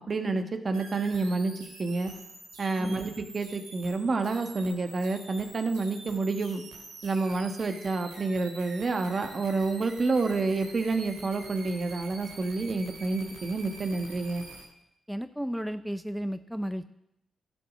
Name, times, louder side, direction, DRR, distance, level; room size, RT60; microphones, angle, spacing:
voice 1, 0.1-1.5 1.8-2.1 2.6-6.6 7.0-14.4, right 3 dB, 50° right, 7 dB, 1.3 m, -29 dB
sound 1, 0.7-14.6, right 2 dB, 85° right, 2.7 m, -47 dB
voice 2, 2.8-3.1 15.1-16.9, equal, ahead, 11 dB, 0.6 m, -33 dB
12.0 x 7.4 x 6.2 m, 0.81 s
hypercardioid pair, 40°, 0 cm